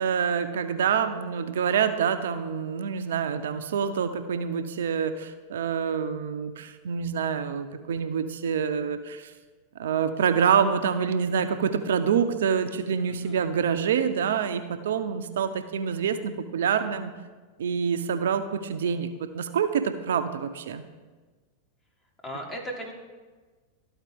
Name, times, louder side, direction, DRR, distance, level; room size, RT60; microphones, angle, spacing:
voice 1, 0.0-9.3 9.8-17.1 17.6-20.8, right 7 dB, 70° right, 9 dB, 0.5 m, -26 dB
voice 2, 13.1-13.4 22.2-22.9, equal, 20° left, 0 dB, 1.7 m, -37 dB
12.5 x 4.3 x 3.4 m, 1.4 s
hypercardioid pair, 95°, 0 cm